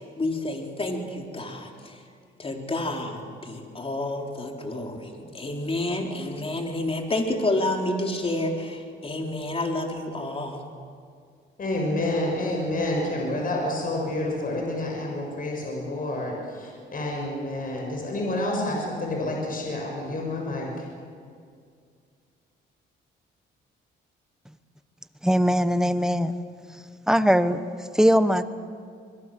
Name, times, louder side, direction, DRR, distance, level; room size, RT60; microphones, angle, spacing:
voice 1, 0.0-2.0 2.4-10.6, left 2 dB, 30° left, 2 dB, 4.1 m, -29 dB
voice 2, 11.6-20.9, left 1 dB, 45° left, 0 dB, 7.0 m, -29 dB
voice 3, 25.2-26.3 27.1-28.4, equal, 5° right, 11 dB, 1.2 m, -21 dB
25.5 x 21.5 x 7.7 m, 2.2 s
cardioid pair, 90°, 20 cm